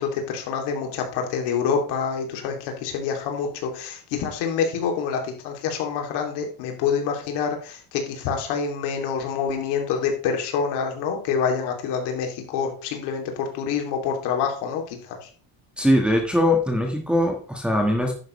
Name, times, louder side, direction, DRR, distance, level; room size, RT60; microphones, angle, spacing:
voice 1, 0.0-15.3, left 6 dB, 60° left, 3 dB, 3.0 m, -27 dB
voice 2, 15.8-18.1, left 1 dB, ahead, 0 dB, 1.6 m, -21 dB
11.0 x 9.0 x 3.3 m, 0.41 s
cardioid pair, 155°, 46 cm